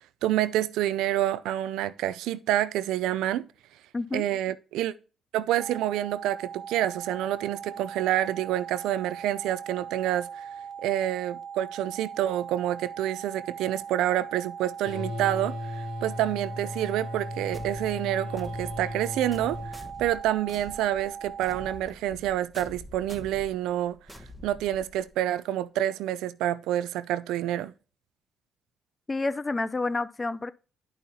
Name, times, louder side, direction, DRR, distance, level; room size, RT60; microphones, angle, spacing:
voice 1, 0.2-3.5 4.1-4.9 5.3-10.4 10.8-24.0 24.4-27.7, right 12 dB, 85° right, 0.4 m, -28 dB
voice 2, 3.9-4.2 29.1-30.5, left 3 dB, 25° left, 0.5 m, -29 dB
sound 1, 5.6-21.8, right 7 dB, 50° right, 1.2 m, -40 dB
sound 2, 14.8-19.8, left 3 dB, 80° left, 2.3 m, -36 dB
sound 3, 17.5-25.2, left 1 dB, ahead, 1.3 m, -46 dB
11.0 x 5.6 x 2.8 m
cardioid pair, 80°, 0 cm